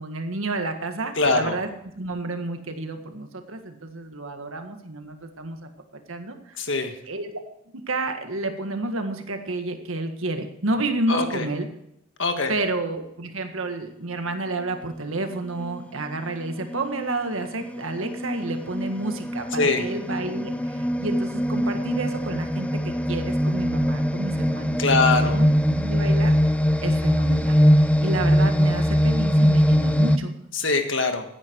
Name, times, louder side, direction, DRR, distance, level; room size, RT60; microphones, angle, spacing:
voice 1, 0.0-1.7 2.0-5.7 6.1-6.5 7.1-7.4 7.7-11.7 12.5-26.4 26.8-27.6 28.0-30.3, right 2 dB, 70° right, 6 dB, 1.7 m, -30 dB
voice 2, 1.2-1.5 6.6-6.9 11.1-11.4 12.2-12.5 19.6-19.8 24.8-25.4 30.5-31.2, left 3 dB, 60° left, 6 dB, 1.7 m, -22 dB
sound 1, 15.6-15.8 16.4-30.2, equal, 5° left, 0.5 m, -22 dB
14.5 x 10.0 x 4.6 m, 0.78 s
head